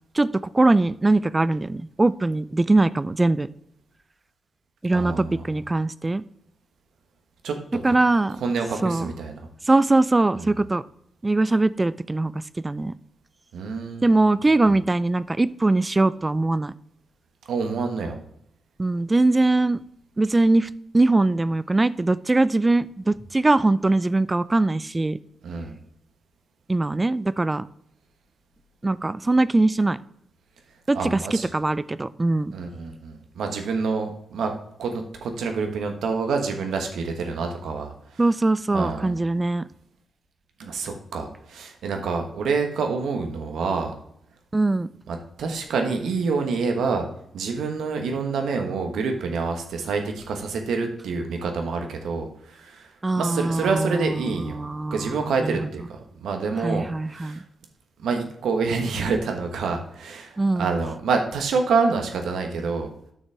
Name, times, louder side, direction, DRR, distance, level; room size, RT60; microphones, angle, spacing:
voice 1, 0.1-3.5 4.8-6.2 7.8-8.4 8.8-9.1 9.6-10.8 11.2-12.9 14.0-16.7 18.8-19.8 20.2-25.2 26.7-27.7 28.8-30.0 30.9-32.5 38.2-39.7 44.5-44.9 53.0-55.7 56.6-57.4 60.4-60.7, right 2 dB, 25° right, 16 dB, 0.4 m, -21 dB
voice 2, 4.9-5.4 7.4-7.5 7.9-8.0 8.4-9.3 10.4-10.5 13.5-14.3 17.5-18.2 25.4-25.7 30.9-31.5 32.5-34.5 34.8-37.9 38.7-39.1 40.6-43.9 45.1-47.1 47.3-52.9 53.1-54.6 54.9-57.4 58.0-62.9, right 4 dB, 75° right, 4 dB, 1.3 m, -27 dB
8.9 x 6.5 x 3.4 m, 0.71 s
hypercardioid pair, 40°, 0 cm